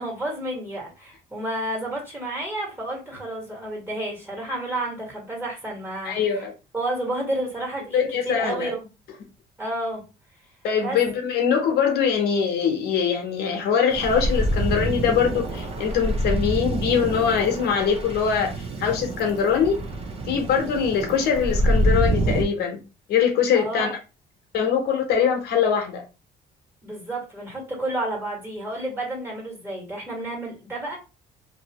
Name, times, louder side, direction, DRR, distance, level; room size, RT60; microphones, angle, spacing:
voice 1, 0.0-6.5 6.7-8.9 9.6-10.0 10.8-11.0 23.5-23.9 26.8-31.0, right 1 dB, 15° right, 1.6 m, -31 dB
voice 2, 6.0-6.5 7.9-8.7 10.6-19.7 20.3-22.8 23.1-24.0 24.5-26.0, left 7 dB, 70° left, 0.9 m, -22 dB
sound 1, 13.9-22.4, right 1 dB, 35° right, 0.7 m, -26 dB
2.7 x 2.6 x 2.9 m
cardioid pair, 110°, 17 cm